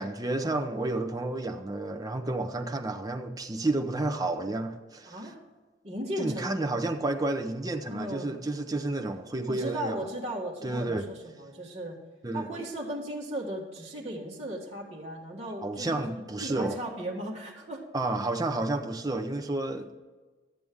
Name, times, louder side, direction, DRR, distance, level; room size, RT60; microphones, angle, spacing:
voice 1, 0.0-5.2 6.2-10.0 10.6-11.1 12.2-12.5 15.6-16.8 17.9-20.0, right 2 dB, 20° right, 0.7 m, -31 dB
voice 2, 5.1-5.4 5.8-6.5 7.9-8.3 9.4-12.0 12.3-16.0 16.4-17.8, right 1 dB, 35° right, 1.7 m, -36 dB
12.5 x 7.6 x 3.6 m
head